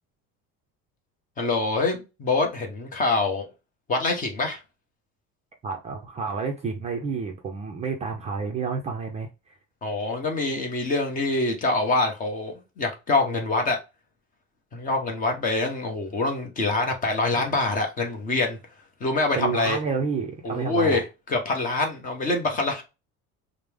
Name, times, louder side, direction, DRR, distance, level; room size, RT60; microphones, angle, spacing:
voice 1, 1.4-3.5 3.9-4.6 9.8-13.8 14.7-18.6 19.0-19.8 20.4-22.8, left 3 dB, 25° left, 0.8 m, -25 dB
voice 2, 5.6-9.5 19.4-21.0, right 5 dB, 20° right, 0.4 m, -30 dB
5.0 x 2.0 x 3.4 m
cardioid pair, 175°, 32 cm